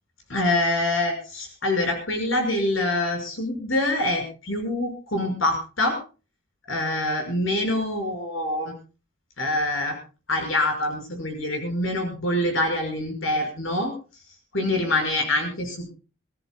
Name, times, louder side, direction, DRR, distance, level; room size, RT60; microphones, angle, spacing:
voice 1, 0.3-6.0 6.7-8.7 9.4-10.0 10.3-13.9 14.5-15.9, left 1 dB, 80° left, 4 dB, 5.9 m, -25 dB
26.5 x 14.5 x 2.3 m, 0.34 s
head